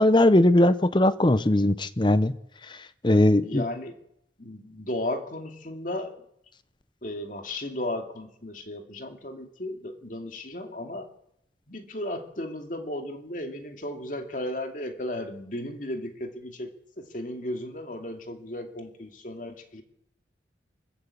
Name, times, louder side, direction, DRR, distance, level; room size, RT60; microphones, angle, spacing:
voice 1, 0.0-2.3 2.7-2.8 3.0-3.6, left 1 dB, 25° left, 14 dB, 0.7 m, -19 dB
voice 2, 3.4-4.0 4.4-6.2 7.0-11.1 11.7-19.8, left 1 dB, 45° left, 5 dB, 2.4 m, -35 dB
24.5 x 14.0 x 8.5 m, 0.76 s
head